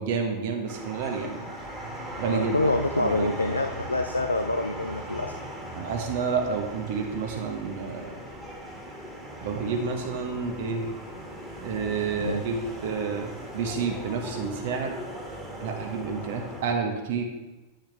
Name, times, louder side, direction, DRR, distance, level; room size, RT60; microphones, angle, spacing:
voice 1, 0.0-1.5 2.2-2.6 2.9-3.3 5.7-8.2 9.4-10.9 11.6-15.0 15.6-17.2, right 5 dB, 55° right, 3 dB, 1.3 m, -29 dB
sound 1, 0.7-16.6, equal, 5° right, 1.9 m, -39 dB
voice 2, 2.3-5.3 12.2-12.4, left 2 dB, 80° left, 5 dB, 0.4 m, -26 dB
10.0 x 6.4 x 3.3 m, 1.1 s
figure-of-eight pair, 90°, 0 cm